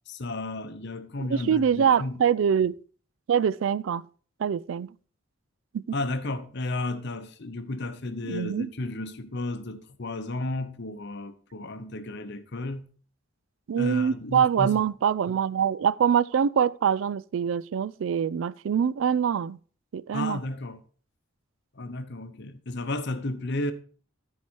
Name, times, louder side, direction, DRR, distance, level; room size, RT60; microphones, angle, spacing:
voice 1, 0.1-2.2 5.9-12.9 13.8-14.8 20.1-20.8 21.8-23.7, left 2 dB, 55° left, 0.8 m, -33 dB
voice 2, 1.2-2.8 3.3-4.0 4.4-4.9 5.7-5.8 8.2-8.7 13.7-19.6 19.9-20.4, right 8 dB, 70° right, 0.3 m, -24 dB
12.5 x 4.8 x 4.5 m
head